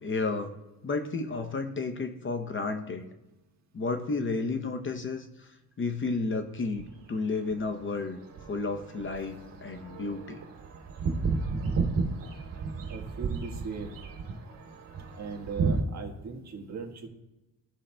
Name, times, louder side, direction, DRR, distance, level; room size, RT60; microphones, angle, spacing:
voice 1, 0.0-0.6 0.8-3.1 3.7-5.5 5.8-8.2 8.5-10.4, left 3 dB, 30° left, 6 dB, 0.7 m, -32 dB
sound 1, 6.8-7.1 7.5-15.8, right 4 dB, 60° right, 2.1 m, -33 dB
voice 2, 12.9-14.0 15.2-17.1, right 5 dB, 45° right, 2 dB, 1.5 m, -38 dB
15.5 x 5.6 x 2.2 m, 1.0 s
cardioid pair, 100°, 39 cm